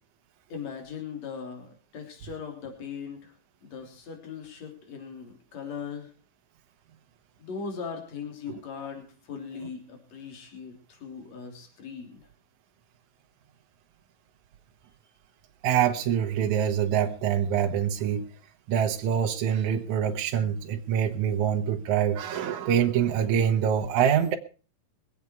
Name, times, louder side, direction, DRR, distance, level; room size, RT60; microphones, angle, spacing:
voice 1, 0.5-3.3 3.6-6.1 7.4-12.2, left 6 dB, 50° left, 4.3 m, -39 dB
voice 2, 15.6-18.3 18.7-24.4, right 9 dB, 65° right, 2.4 m, -25 dB
23.5 x 8.3 x 4.6 m
omnidirectional pair, 4.1 m